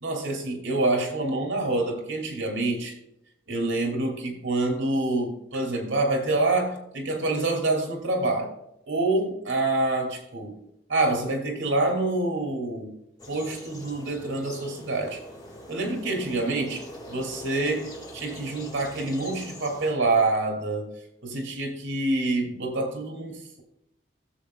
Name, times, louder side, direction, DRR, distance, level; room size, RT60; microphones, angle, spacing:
voice 1, 0.0-3.0 3.5-8.5 8.9-10.6 10.9-12.9 13.3-15.2 15.7-20.9 21.2-23.6, right 2 dB, 75° right, 2 dB, 2.7 m, -27 dB
sound 1, 13.2-19.9, left 1 dB, 20° left, 1.9 m, -43 dB
16.0 x 7.5 x 2.3 m, 0.81 s
head